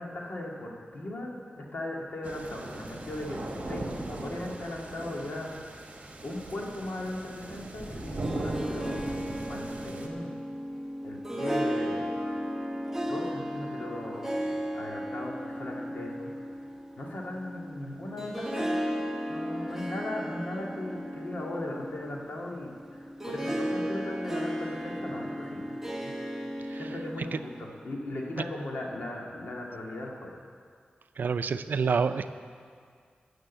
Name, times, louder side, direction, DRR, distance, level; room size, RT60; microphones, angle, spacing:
voice 1, 0.0-5.8 6.2-10.3 11.0-12.1 13.0-16.3 17.0-19.0 19.3-25.8 26.0-30.3, left 1 dB, 65° left, -2 dB, 2.0 m, -38 dB
sound 1, 2.2-10.1, right 2 dB, 40° right, 1.5 m, -38 dB
Harp, 8.0-27.8, equal, 5° right, 1.1 m, -35 dB
voice 2, 31.2-32.3, right 5 dB, 75° right, 11 dB, 0.5 m, -27 dB
13.0 x 6.5 x 8.1 m, 2.1 s
wide cardioid pair, 110°, 3 cm